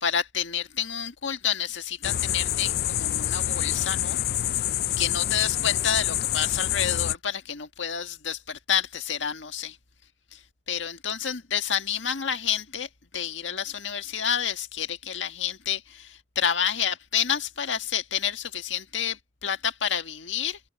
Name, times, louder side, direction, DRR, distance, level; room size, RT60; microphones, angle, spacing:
voice 1, 0.0-4.2 4.5-4.7 5.0-9.8 10.3-20.6, left 8 dB, 85° left, 1.7 m, -29 dB
sound 1, 2.0-7.2, left 12 dB, 55° left, 0.4 m, -27 dB
head